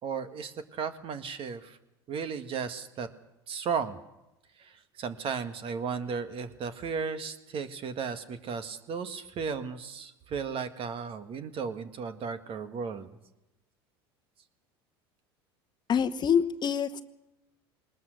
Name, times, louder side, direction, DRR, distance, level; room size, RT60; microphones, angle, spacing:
voice 1, 0.0-1.8 2.1-3.1 3.5-4.0 4.6-4.7 5.0-13.1, right 6 dB, 45° right, 9 dB, 1.8 m, -35 dB
voice 2, 15.9-17.0, left 7 dB, 35° left, 10 dB, 1.1 m, -26 dB
20.5 x 20.0 x 6.6 m, 0.95 s
hypercardioid pair, 85°, 13 cm